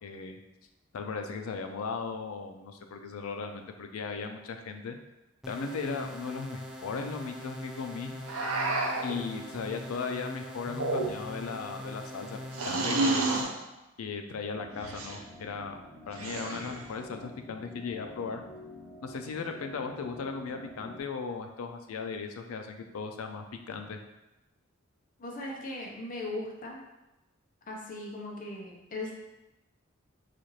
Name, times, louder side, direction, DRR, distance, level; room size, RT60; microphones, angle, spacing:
voice 1, 0.0-0.4 0.9-5.0 5.5-8.1 9.0-13.4 14.0-15.8 16.1-18.4 19.0-24.0, left 5 dB, 85° left, 5 dB, 0.4 m, -37 dB
sound 1, 5.4-13.4, left 1 dB, ahead, 0.3 m, -42 dB
sound 2, 8.3-9.2 10.7-11.4 12.5-13.5 14.8-15.2 16.1-16.8, right 2 dB, 85° right, 0.5 m, -30 dB
sound 3, 14.5-21.0, left 1 dB, 60° left, 1.1 m, -48 dB
voice 2, 25.2-26.8 27.7-29.1, left 2 dB, 40° left, -1 dB, 0.6 m, -38 dB
4.1 x 2.4 x 3.1 m, 0.97 s
head